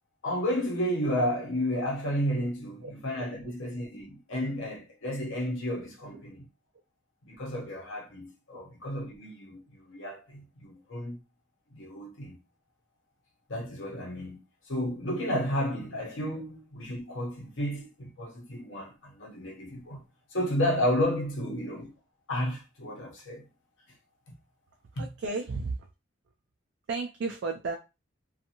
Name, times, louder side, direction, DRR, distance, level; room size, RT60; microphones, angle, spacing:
voice 1, 0.2-6.5 7.2-11.2 11.7-12.4 13.5-20.0 20.3-21.9 22.3-23.4 25.0-25.1, equal, 80° left, 0.9 m, -32 dB
voice 2, 25.0-25.9 26.9-27.8, right 3 dB, 65° right, 0.4 m, -33 dB
2.6 x 2.4 x 2.8 m
head